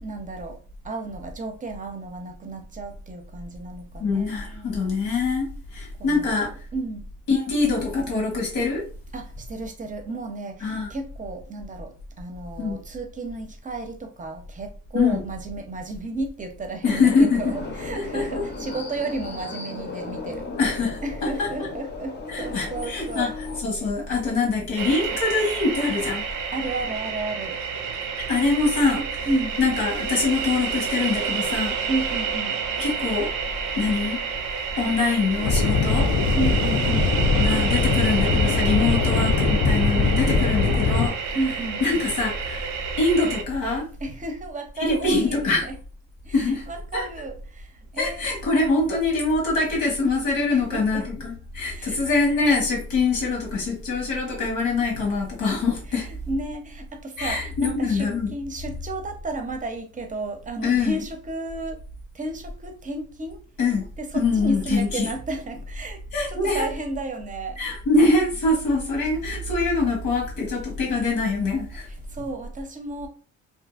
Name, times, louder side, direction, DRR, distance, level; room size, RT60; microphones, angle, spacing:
voice 1, 0.0-4.9 6.0-7.1 9.1-20.5 21.0-23.3 26.5-27.6 29.3-29.6 31.9-32.6 36.4-37.2 41.3-41.8 44.0-45.8 46.2-48.2 50.5-51.0 51.7-52.0 55.9-61.8 62.1-63.4 64.0-66.0 66.3-67.6 71.9-73.1, right 2 dB, 25° right, 0.6 m, -33 dB
voice 2, 4.0-6.5 7.3-8.8 10.6-10.9 12.6-12.8 14.9-15.2 16.8-17.4 17.9-18.2 20.6-21.5 22.3-23.3 23.6-26.2 28.3-29.3 29.6-31.7 32.8-33.3 33.8-34.2 34.8-36.1 37.4-41.4 41.8-42.7 43.0-43.9 44.8-45.6 46.3-46.7 46.9-47.0 48.0-56.1 57.2-58.3 60.6-61.0 63.6-63.8 64.1-65.1 66.1-66.7 67.6-71.9, left 3 dB, 85° left, 1.3 m, -24 dB
sound 1, 16.8-23.6, left 3 dB, 35° left, 0.7 m, -36 dB
sound 2, 24.8-43.4, right 6 dB, 85° right, 0.5 m, -29 dB
sound 3, 35.4-41.1, left 4 dB, 70° left, 0.5 m, -21 dB
2.7 x 2.5 x 2.4 m
cardioid pair, 90°, 30 cm